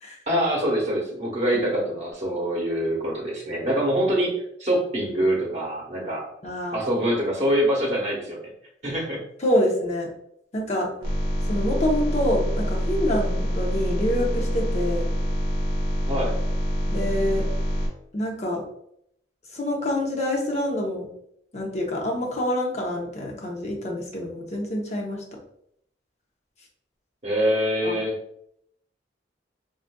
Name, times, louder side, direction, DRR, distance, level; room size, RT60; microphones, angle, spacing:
voice 1, 0.3-4.3 4.6-6.3 6.7-8.5 8.8-9.2 16.1-16.4 27.2-28.2, equal, 40° right, -3 dB, 1.0 m, -24 dB
voice 2, 6.4-6.8 9.4-10.1 10.5-10.9 11.5-15.1 16.9-17.5 18.1-18.6 19.5-21.1 21.5-25.2 27.8-28.0, left 1 dB, 40° left, -1 dB, 0.8 m, -26 dB
sound 1, 11.0-17.9, equal, 55° left, 1.2 m, -25 dB
3.9 x 2.5 x 2.2 m, 0.72 s
head